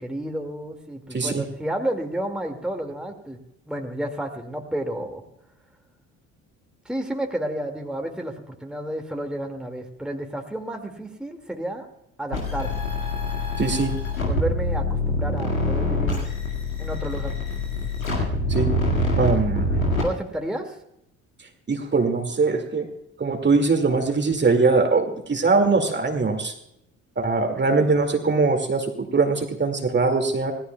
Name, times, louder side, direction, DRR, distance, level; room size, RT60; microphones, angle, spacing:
voice 1, 0.0-3.4 3.7-5.2 6.9-11.9 12.2-12.8 14.3-16.3 16.8-17.3 20.0-20.8, right 1 dB, ahead, 3 dB, 2.1 m, -31 dB
voice 2, 1.1-1.4 13.6-13.9 18.5-18.7 19.2-19.7 21.7-22.9 23.2-26.5 27.2-30.5, right 4 dB, 25° right, 4 dB, 2.2 m, -21 dB
sound 1, 12.3-20.0, left 1 dB, 90° left, 2.1 m, -25 dB
26.0 x 17.0 x 2.3 m, 0.80 s
figure-of-eight pair, 50°, 40 cm